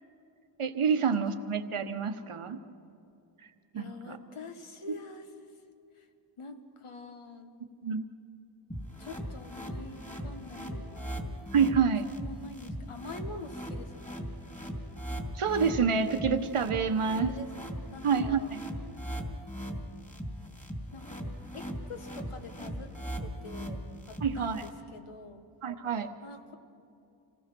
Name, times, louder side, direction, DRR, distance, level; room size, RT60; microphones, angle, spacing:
voice 1, 0.6-2.6 3.7-4.2 7.8-8.1 11.5-12.1 15.3-17.3 18.0-18.6 24.2-24.6 25.6-26.1, right 6 dB, 80° right, 8 dB, 1.2 m, -27 dB
voice 2, 3.7-5.3 5.9-6.1 6.4-7.5 9.0-11.2 11.7-14.2 17.0-17.5 17.9-18.6 20.9-21.2 21.5-22.9 23.2-25.5 26.2-26.5, left 3 dB, 80° left, 6 dB, 1.6 m, -46 dB
sound 1, 8.7-24.7, equal, 15° left, 2.7 m, -39 dB
27.0 x 18.0 x 6.1 m, 2.7 s
wide cardioid pair, 85°, 50 cm